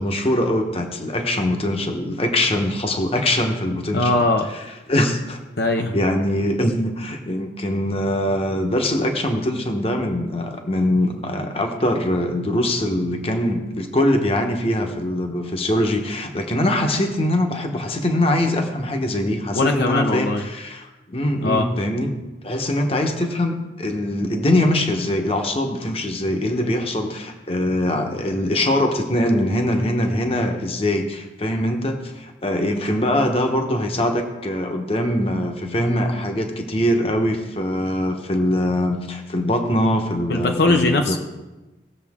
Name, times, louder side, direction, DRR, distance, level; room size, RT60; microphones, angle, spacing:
voice 1, 0.0-4.2 4.9-5.4 5.9-22.1 22.4-41.2, left 1 dB, 35° left, 4 dB, 1.1 m, -22 dB
voice 2, 3.9-4.5 5.6-6.0 19.5-20.4 21.4-21.7 40.3-41.2, left 2 dB, 65° left, 3 dB, 0.8 m, -20 dB
18.0 x 7.1 x 3.6 m, 1.1 s
head